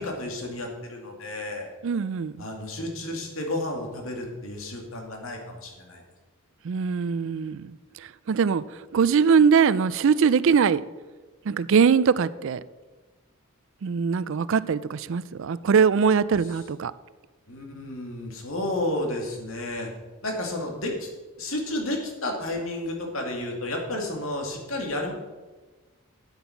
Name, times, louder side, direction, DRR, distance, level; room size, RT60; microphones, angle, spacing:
voice 1, 0.0-1.7 2.4-6.0 17.5-19.9 20.2-21.1 21.4-25.1, left 1 dB, 70° left, 2 dB, 2.4 m, -31 dB
voice 2, 1.8-2.3 6.6-7.8 8.3-8.6 8.9-10.8 11.5-12.6 13.8-16.9, right 6 dB, 60° right, 18 dB, 0.4 m, -21 dB
9.7 x 8.2 x 5.8 m, 1.3 s
head